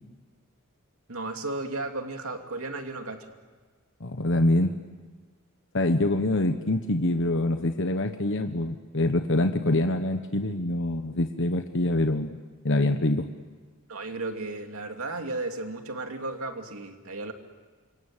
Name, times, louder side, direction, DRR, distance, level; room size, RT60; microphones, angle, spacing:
voice 1, 1.1-3.4 13.9-17.3, right 2 dB, 70° right, 4 dB, 2.9 m, -34 dB
voice 2, 4.0-4.8 5.7-12.4 12.6-13.2, left 1 dB, 60° left, 6 dB, 1.3 m, -25 dB
27.5 x 24.0 x 9.1 m, 1.4 s
head